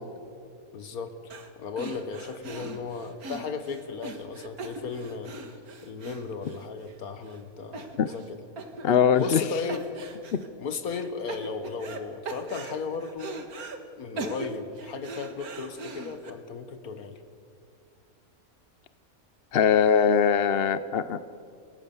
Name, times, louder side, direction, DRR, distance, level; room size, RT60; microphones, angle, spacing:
voice 1, 0.7-1.2 1.6-5.3 5.8-8.4 9.2-9.9 10.6-13.5 14.0-17.2, left 5 dB, 80° left, 10 dB, 1.8 m, -35 dB
sound 1, 1.3-1.5 1.8-6.9 7.3-7.4 7.7-8.3 8.6-9.4 9.7-10.5 10.9-12.0 12.3-13.8 14.2-16.3, right 3 dB, 90° right, 2.1 m, -40 dB
voice 2, 8.8-9.4 10.3-10.4 19.5-21.3, left 7 dB, 55° left, 13 dB, 0.7 m, -21 dB
28.0 x 16.0 x 7.0 m, 2.3 s
omnidirectional pair, 1.5 m